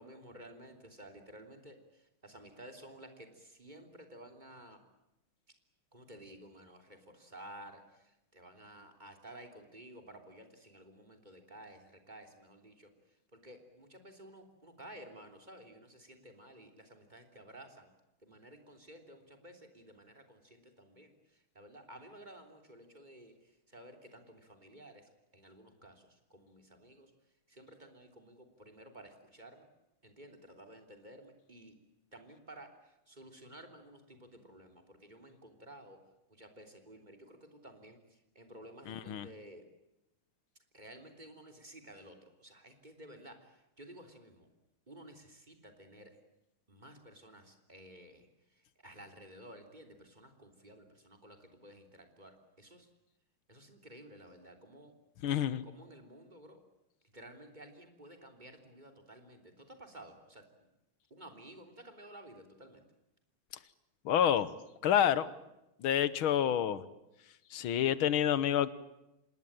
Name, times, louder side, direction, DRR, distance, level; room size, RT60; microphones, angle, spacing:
voice 1, 0.0-4.8 5.9-12.9 13.3-17.9 18.2-27.1 27.5-29.7 30.0-31.8 32.1-36.0 36.3-39.6 40.7-44.5 44.9-46.2 46.7-52.9 53.5-54.9 55.6-56.6 57.1-60.4 61.1-62.8, right 1 dB, 20° right, 5 dB, 3.4 m, -54 dB
voice 2, 38.9-39.3 55.2-55.7 64.1-64.5 64.8-65.3 65.8-66.8 67.5-68.7, left 10 dB, 85° left, 16 dB, 1.9 m, -28 dB
26.5 x 20.5 x 8.9 m, 0.90 s
omnidirectional pair, 2.2 m